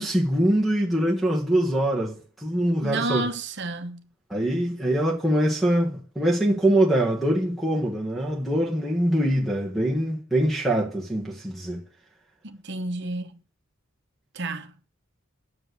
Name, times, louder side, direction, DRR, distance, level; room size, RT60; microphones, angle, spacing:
voice 1, 0.0-3.2 4.3-11.8, right 1 dB, ahead, 1.6 m, -23 dB
voice 2, 2.8-4.1 12.4-13.4 14.3-14.7, right 2 dB, 55° right, 1.0 m, -30 dB
7.6 x 6.9 x 7.8 m
head